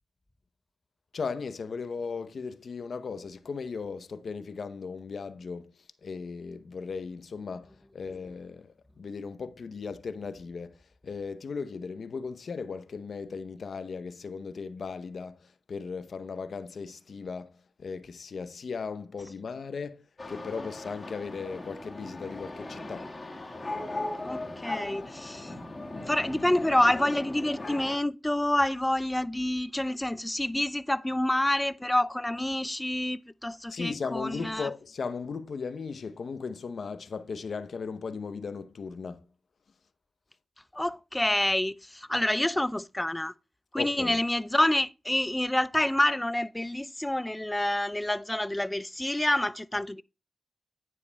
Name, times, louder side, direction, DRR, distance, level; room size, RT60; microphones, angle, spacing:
voice 1, 1.1-23.1 33.7-39.3 43.7-44.2, left 5 dB, 65° left, 0.8 m, -37 dB
sound 1, 20.2-28.0, left 2 dB, 35° left, 1.7 m, -38 dB
voice 2, 24.2-25.5 26.1-34.7 40.7-43.3 43.7-50.0, left 1 dB, 15° left, 0.4 m, -28 dB
10.0 x 9.4 x 2.3 m
cardioid pair, 50°, 0 cm